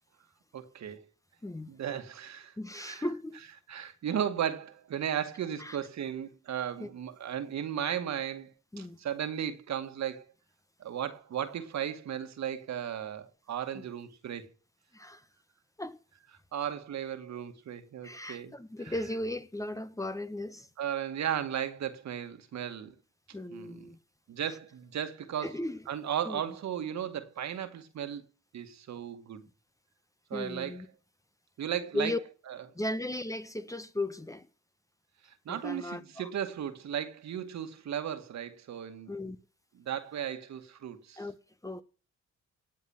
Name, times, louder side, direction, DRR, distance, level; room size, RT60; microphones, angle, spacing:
voice 1, 0.5-1.0 1.7-3.1 3.7-10.3 10.8-14.5 16.5-18.5 18.9-19.0 20.8-22.9 23.5-23.9 24.3-25.5 25.9-28.2 28.5-29.4 30.3-30.8 31.6-32.1 35.5-39.1 39.8-41.2, right 9 dB, 65° right, 2.2 m, -35 dB
voice 2, 2.6-3.4 5.6-5.8 6.8-6.9 8.7-9.0 13.7-13.9 14.9-15.2 15.8-16.0 18.0-20.7 23.3-24.0 25.4-25.9 26.2-26.4 30.3-30.9 31.9-32.2 32.7-34.5 35.5-36.3 39.1-39.4 41.2-41.3 41.6-41.8, left 1 dB, 10° left, 1.3 m, -36 dB
18.0 x 7.5 x 7.4 m
cardioid pair, 90°, 30 cm